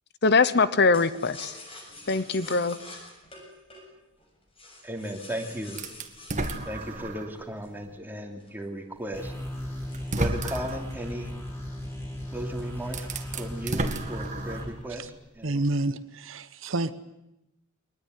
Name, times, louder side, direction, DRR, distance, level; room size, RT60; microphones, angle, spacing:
voice 1, 0.2-1.5 2.1-2.8, left 4 dB, 50° left, 0.9 m, -22 dB
sound 1, 0.9-7.8 8.4-10.8 11.2-11.3 11.6-11.9 12.4-13.1 13.4-14.0, left 2 dB, 25° left, 7.2 m, -47 dB
voice 2, 4.8-5.8 6.7-9.3 10.2-11.3 12.3-13.1 13.4-15.0 15.4-15.5, right 1 dB, 10° right, 3.0 m, -35 dB
sound 2, 5.8-7.4 7.9-8.0 9.3-9.4 9.9-10.9 12.3-12.4 12.8-14.8, right 2 dB, 35° right, 1.9 m, -32 dB
sound 3, 9.1-14.7, left 1 dB, 10° left, 6.6 m, -36 dB
voice 3, 15.4-16.9, right 2 dB, 65° right, 1.0 m, -29 dB
23.0 x 20.0 x 9.4 m
head